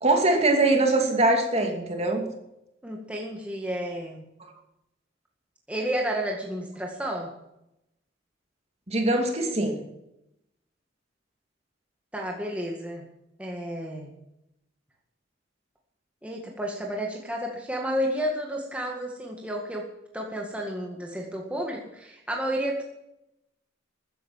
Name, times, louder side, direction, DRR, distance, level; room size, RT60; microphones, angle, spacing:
voice 1, 0.0-2.2 8.9-9.8, right 2 dB, 35° right, 3 dB, 2.6 m, -22 dB
voice 2, 2.8-4.2 5.7-7.3 12.1-13.1 13.4-14.1 16.2-19.8 20.1-22.8, equal, 5° right, -1 dB, 1.9 m, -31 dB
14.0 x 10.5 x 7.3 m, 0.85 s
head